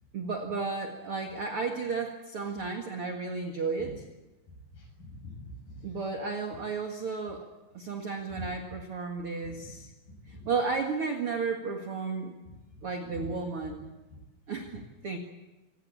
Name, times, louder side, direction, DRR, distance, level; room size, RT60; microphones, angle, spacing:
voice 1, 0.1-3.9 5.8-7.5 7.7-9.9 10.3-12.3 12.8-14.0 14.5-15.2, right 4 dB, 50° right, 4 dB, 1.8 m, -33 dB
voice 2, 4.7-5.9 8.4-8.5 9.4-9.7 10.1-10.5 12.4-12.8 13.0-13.3 14.1-14.2, left 1 dB, 50° left, 2 dB, 8.0 m, -45 dB
26.5 x 18.0 x 8.5 m, 1.1 s
omnidirectional pair, 5.1 m